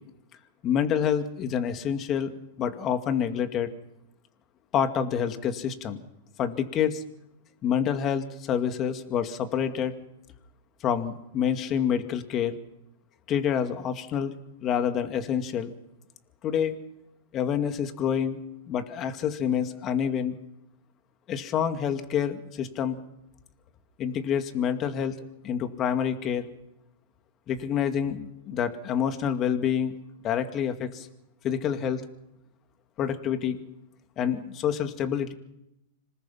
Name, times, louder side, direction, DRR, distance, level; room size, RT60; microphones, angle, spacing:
voice 1, 0.6-2.3 2.6-3.7 4.7-6.0 6.4-7.0 7.6-9.9 10.8-12.5 13.3-14.3 14.6-15.7 16.4-16.8 17.3-18.4 18.7-20.4 21.3-23.0 24.0-25.2 25.4-26.5 27.5-30.0 30.2-31.1 31.4-32.0 33.0-33.6 34.2-35.3, left 8 dB, 30° left, 8 dB, 2.2 m, -27 dB
26.5 x 19.5 x 5.8 m, 0.84 s
hypercardioid pair, 130°, 0 cm